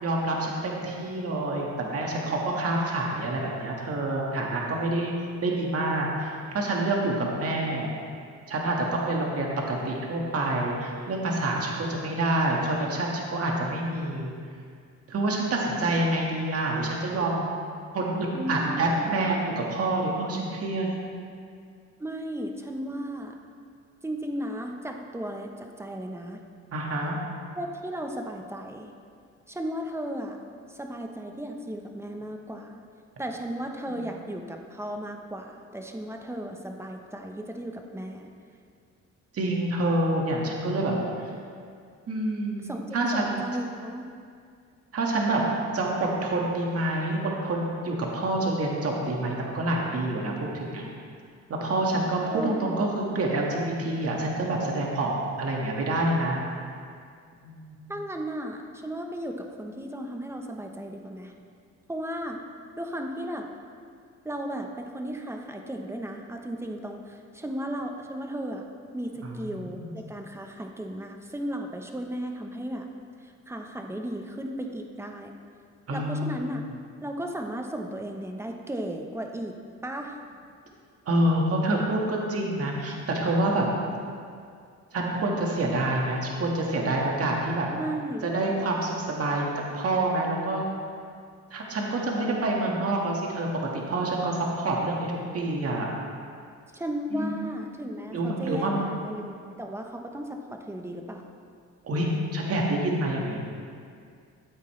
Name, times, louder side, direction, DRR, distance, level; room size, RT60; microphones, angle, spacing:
voice 1, 0.0-5.1 5.4-7.9 8.5-14.3 15.1-17.5 17.9-20.9 26.7-27.2 39.3-40.9 42.1-43.3 44.9-45.4 45.7-50.9 51.5-56.4 57.4-57.9 69.2-69.8 75.9-76.4 81.1-83.7 84.9-87.7 88.2-89.5 89.7-90.6 91.5-95.9 97.1-97.5 98.1-98.9 101.8-103.4, right 2 dB, 50° right, -2 dB, 1.8 m, -27 dB
voice 2, 18.3-19.1 22.0-23.3 24.0-26.4 27.5-28.9 29.5-30.4 30.7-32.8 33.2-38.3 42.6-44.1 52.2-52.7 57.9-61.3 61.9-62.4 62.8-63.5 64.2-68.6 68.9-72.9 73.2-75.3 75.9-76.7 77.0-79.6 79.8-80.2 87.7-88.2 96.7-101.3, equal, 10° right, 3 dB, 1.0 m, -35 dB
13.5 x 8.2 x 3.3 m, 2.2 s
cardioid pair, 90°, 30 cm